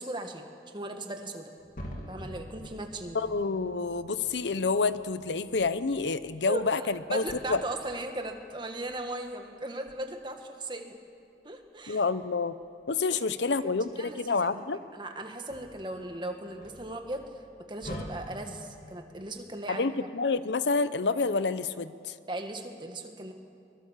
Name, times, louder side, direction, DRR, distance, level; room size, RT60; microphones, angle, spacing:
voice 1, 0.0-1.5 2.1-3.2 6.4-11.0 11.4-12.0 13.4-14.5 14.9-17.2 17.7-19.9 22.3-23.3, right 1 dB, 25° right, 4 dB, 1.8 m, -38 dB
sound 1, 1.6-9.3 9.8-10.0 11.9-12.6 13.3-14.9 15.2-19.3, equal, 50° left, 2.8 m, -47 dB
voice 2, 3.1-7.2 7.5-7.6 11.9-12.5 12.9-14.8 19.7-22.1, left 4 dB, 80° left, 14 dB, 0.7 m, -28 dB
23.0 x 22.5 x 7.4 m, 2.4 s
head